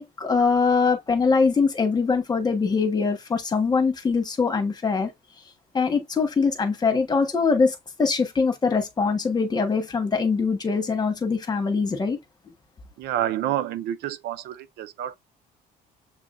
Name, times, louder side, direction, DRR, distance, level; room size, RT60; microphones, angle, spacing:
voice 1, 0.0-5.1 5.7-12.2, left 4 dB, 25° left, 1.2 m, -23 dB
voice 2, 13.0-15.1, right 12 dB, 75° right, 0.5 m, -28 dB
7.0 x 2.7 x 2.5 m
cardioid pair, 110°, 17 cm